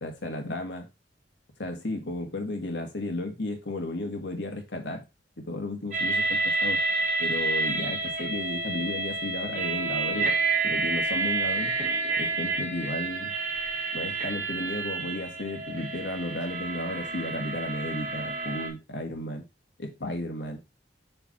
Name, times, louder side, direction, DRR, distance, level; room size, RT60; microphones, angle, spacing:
voice 1, 0.0-0.9 1.6-5.0 5.4-6.8 7.2-10.4 10.6-11.7 12.2-13.3 13.9-19.4 19.8-20.6, left 1 dB, 75° left, 4 dB, 1.6 m, -34 dB
sound 1, 5.9-18.7, right 3 dB, 45° right, 2.3 m, -29 dB
7.0 x 3.4 x 4.2 m, 0.24 s
head